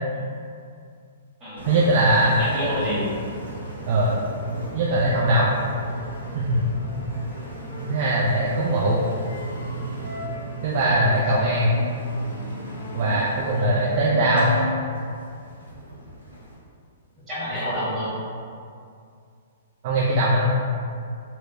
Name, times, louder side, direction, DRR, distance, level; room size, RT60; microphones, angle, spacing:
voice 1, 1.6-2.4 3.9-4.1 4.7-5.5 6.3-6.6 7.9-9.0 10.6-11.8 12.9-14.5 19.8-20.5, right 1 dB, 45° right, -5 dB, 0.3 m, -20 dB
Engine, 1.6-16.6, right 1 dB, 85° right, 0.6 m, -35 dB
voice 2, 2.4-3.0 11.0-11.2 17.3-18.1, equal, 20° right, -11 dB, 1.4 m, -28 dB
2.7 x 2.1 x 2.6 m, 2.3 s
figure-of-eight pair, 115°, 0 cm